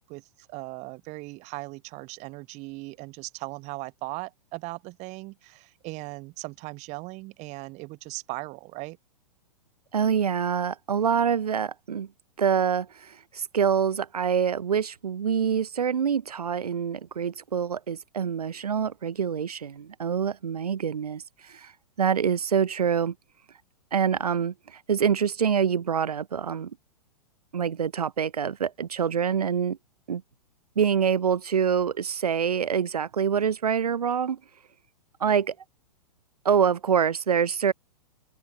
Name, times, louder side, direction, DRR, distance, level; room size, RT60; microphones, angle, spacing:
voice 1, 0.1-9.0, right 23 dB, 35° right, 2.2 m, -38 dB
voice 2, 9.9-12.1 12.4-21.7 22.0-23.1 23.9-26.7 27.5-29.8 30.1-30.2 30.8-34.4 35.2-35.5 36.4-37.7, right 7 dB, 70° right, 2.2 m, -25 dB
open air
figure-of-eight pair, 105°, 20 cm